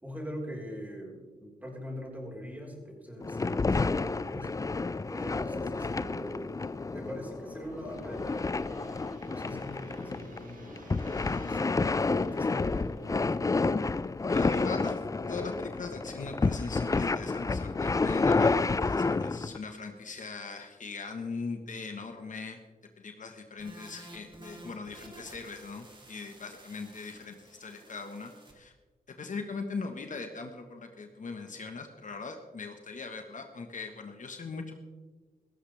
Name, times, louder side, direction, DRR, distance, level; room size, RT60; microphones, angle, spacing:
voice 1, 0.0-4.5 5.1-6.6 6.9-8.9 9.2-10.8 11.2-13.7, equal, 10° right, -2 dB, 4.6 m, -42 dB
sound 1, 3.2-19.6, left 3 dB, 20° left, 0.4 m, -30 dB
Gong, 4.4-16.5 16.8-17.1, right 2 dB, 60° right, 2.8 m, -54 dB
voice 2, 14.3-15.0 15.3-22.6 23.0-28.7 29.1-34.7, left 4 dB, 55° left, 5 dB, 1.4 m, -40 dB
sound 2, 23.6-28.5, right 1 dB, 30° right, 3.0 m, -52 dB
17.5 x 15.0 x 3.5 m, 1.3 s
cardioid pair, 80°, 15 cm